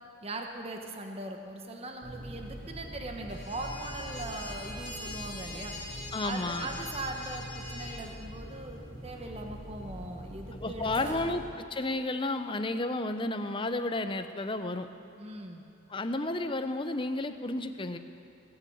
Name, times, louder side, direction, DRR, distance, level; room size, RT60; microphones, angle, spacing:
voice 1, 0.2-5.7 6.2-11.3 15.2-15.6, right 2 dB, 30° right, 3 dB, 1.2 m, -40 dB
sound 1, 2.0-11.4, equal, 50° right, 4.1 m, -44 dB
sound 2, 3.3-8.0, left 2 dB, 55° left, 3.5 m, -43 dB
voice 2, 6.1-6.7 10.5-11.4 11.7-14.9 15.9-18.0, left 2 dB, 25° left, 9 dB, 0.6 m, -32 dB
19.5 x 8.5 x 8.0 m, 2.8 s
head